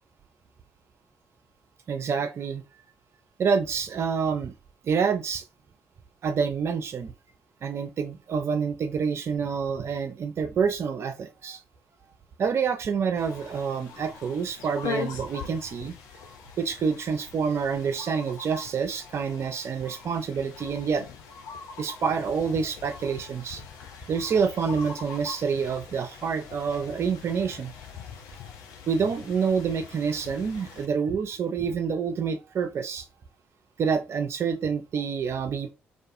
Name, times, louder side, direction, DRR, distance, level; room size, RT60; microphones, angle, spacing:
voice 1, 1.9-2.6 3.4-4.5 4.8-5.4 6.2-7.1 7.6-11.6 12.4-16.0 16.6-21.0 21.8-23.6 24.1-27.7 28.9-33.1 33.8-35.7, right 6 dB, 50° right, 0.4 m, -27 dB
sound 1, 13.2-30.9, left 6 dB, 65° left, 0.4 m, -42 dB
2.4 x 2.3 x 2.6 m
figure-of-eight pair, 40°, 6 cm